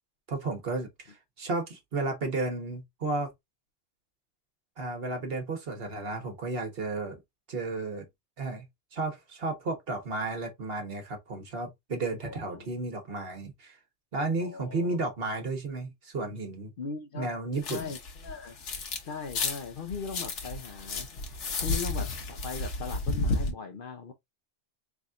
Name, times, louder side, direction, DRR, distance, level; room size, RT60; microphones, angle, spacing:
voice 1, 0.3-3.3 4.8-7.2 7.5-8.1 8.4-8.7 8.9-13.8 14.1-16.7 17.1-17.9, right 3 dB, 60° right, 1.3 m, -33 dB
voice 2, 12.2-12.7 14.4-15.0 16.8-17.3 17.7-18.6 19.0-21.1 21.6-24.1, left 5 dB, 55° left, 0.8 m, -39 dB
sound 1, 17.6-19.0 19.3-23.5, left 3 dB, 85° left, 1.2 m, -32 dB
4.1 x 3.5 x 2.4 m
omnidirectional pair, 1.2 m